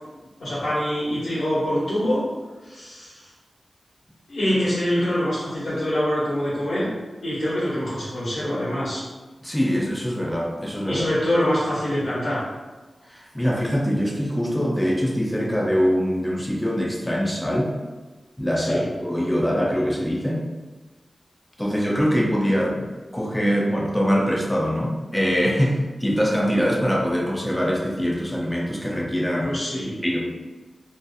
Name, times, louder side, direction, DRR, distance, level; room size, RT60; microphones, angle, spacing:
voice 1, 0.4-2.2 2.6-3.3 4.3-6.9 7.2-9.0 10.9-12.4 18.6-18.9 29.4-29.9, equal, 75° left, -11 dB, 1.1 m, -25 dB
voice 2, 9.4-11.1 13.1-17.7 18.4-20.5 21.6-22.9 23.1-29.5 30.0-30.3, equal, 5° left, -2 dB, 0.4 m, -23 dB
2.6 x 2.5 x 2.3 m, 1.2 s
wide cardioid pair, 120°, 0 cm